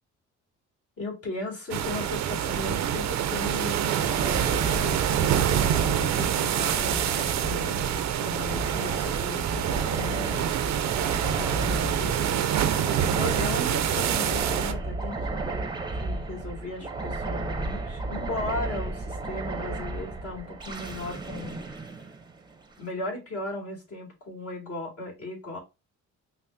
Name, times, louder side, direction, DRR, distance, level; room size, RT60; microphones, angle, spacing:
voice 1, 1.0-10.7 11.4-15.6 16.0-21.6 22.8-25.6, left 2 dB, 50° left, 2.2 m, -37 dB
sound 1, 1.7-14.7, right 10 dB, 65° right, 0.5 m, -26 dB
sound 2, 3.9-22.7, right 2 dB, 15° right, 0.7 m, -34 dB
5.6 x 2.1 x 2.6 m
cardioid pair, 90°, 30 cm